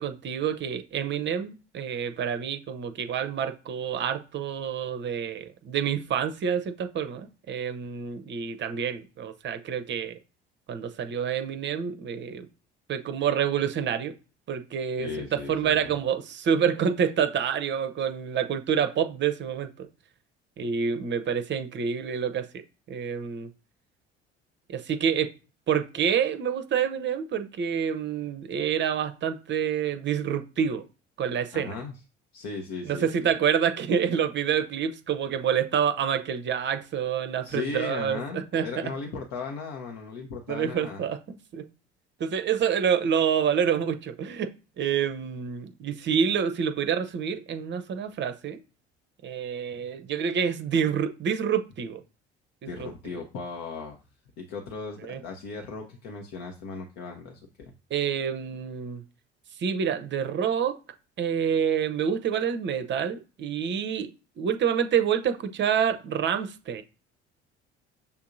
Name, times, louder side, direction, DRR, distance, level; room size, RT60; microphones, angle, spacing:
voice 1, 0.0-10.2 10.7-12.5 12.9-14.1 14.5-19.9 20.6-22.5 22.9-23.5 24.7-25.3 25.7-30.8 31.2-31.8 32.8-38.8 40.5-41.7 42.2-44.5 44.8-48.6 49.2-52.0 52.8-52.9 55.0-55.2 57.9-59.0 59.6-60.8 61.2-64.1 64.4-66.8, right 8 dB, 35° right, 0.6 m, -27 dB
voice 2, 15.0-15.8 31.5-31.9 32.3-33.3 37.4-41.0 52.7-54.0 54.4-57.7, left 4 dB, 55° left, 0.9 m, -37 dB
6.8 x 2.7 x 2.6 m
figure-of-eight pair, 55°, 32 cm